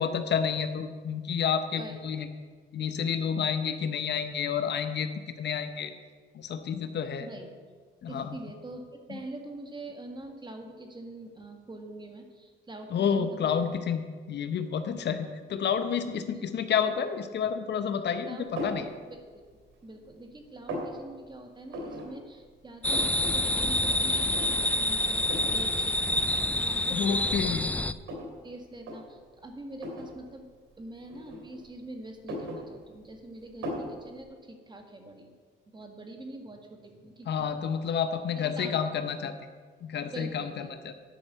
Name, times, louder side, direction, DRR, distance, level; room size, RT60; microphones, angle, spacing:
voice 1, 0.0-2.3 2.7-5.1 5.4-5.9 6.3-7.3 8.0-8.4 9.1-9.2 12.9-18.4 18.6-18.9 26.9-27.7 37.3-39.3 39.8-40.5 40.8-40.9, left 7 dB, 60° left, 9 dB, 0.8 m, -29 dB
voice 2, 1.8-2.3 7.2-7.5 8.1-13.7 15.2-15.5 16.3-16.5 18.3-18.5 19.0-19.4 19.8-27.8 28.1-30.5 30.8-35.3 35.7-38.0 38.5-39.0 40.1-40.9, right 1 dB, 20° right, 4 dB, 1.7 m, -44 dB
sound 1, 18.6-18.9 19.4-20.1 20.3-20.9 21.7-22.1 22.4-22.5 22.7-23.3 23.7-23.8 24.3-24.8 25.3-25.6 26.4-26.5 27.0-28.4 28.8-29.0 29.8-30.1 31.1-31.8 32.1-33.1 33.6-33.9, equal, 85° right, 2.8 m, -37 dB
sound 2, 22.8-27.9, left 1 dB, 5° left, 0.4 m, -27 dB
10.5 x 5.5 x 8.0 m, 1.6 s
cardioid pair, 90°, 20 cm